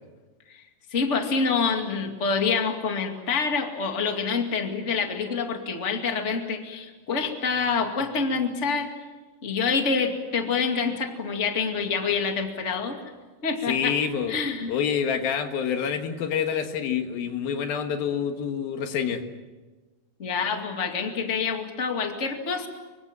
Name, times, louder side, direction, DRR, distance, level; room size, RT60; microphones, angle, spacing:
voice 1, 0.9-8.9 9.4-13.0 13.4-14.0 14.3-14.7 20.2-22.7, left 5 dB, 25° left, 4 dB, 2.1 m, -26 dB
voice 2, 13.7-14.4 14.7-19.2, left 7 dB, 90° left, 6 dB, 3.5 m, -27 dB
25.0 x 24.5 x 7.5 m, 1.3 s
omnidirectional pair, 4.0 m